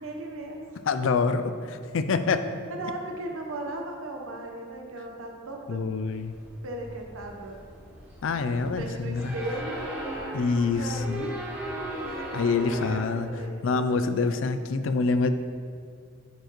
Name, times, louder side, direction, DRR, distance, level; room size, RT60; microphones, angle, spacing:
voice 1, 0.0-0.8 2.7-5.8 6.6-7.6 8.6-9.8 10.6-11.5 12.2-13.6, right 1 dB, 90° right, 2 dB, 0.9 m, -37 dB
voice 2, 0.9-2.4 5.7-6.3 8.2-9.3 10.3-11.3 12.3-13.3 13.6-15.3, left 4 dB, 70° left, 10 dB, 0.4 m, -26 dB
sound 1, 6.1-12.9, right 1 dB, 10° right, 1.2 m, -38 dB
9.2 x 4.7 x 3.0 m, 2.2 s
head